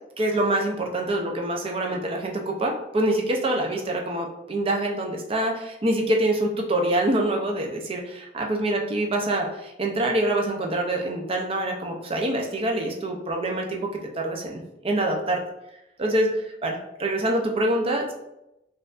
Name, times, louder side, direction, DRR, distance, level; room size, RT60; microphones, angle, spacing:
voice 1, 0.2-13.9 14.2-15.4 16.0-18.1, right 1 dB, 30° right, 1 dB, 0.5 m, -25 dB
4.3 x 2.5 x 2.4 m, 0.88 s
head